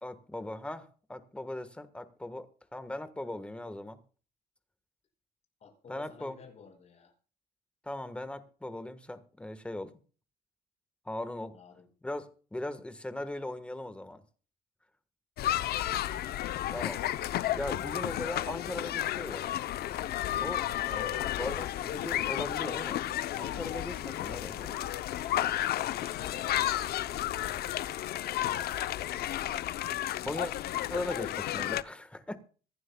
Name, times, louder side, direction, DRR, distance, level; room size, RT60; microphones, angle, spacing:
voice 1, 0.0-2.5 2.7-4.0 5.9-6.4 7.8-10.0 11.0-11.6 12.0-14.2 16.7-17.0 17.5-19.5 20.4-23.0 23.4-24.6 30.2-30.5 30.9-32.4, left 1 dB, 5° left, 1.4 m, -39 dB
voice 2, 5.6-7.1 11.5-11.9 24.5-24.8 26.0-26.9, left 5 dB, 40° left, 5.8 m, -54 dB
sound 1, 15.4-31.8, left 13 dB, 70° left, 0.7 m, -32 dB
25.0 x 11.0 x 2.3 m
cardioid pair, 155°, 17 cm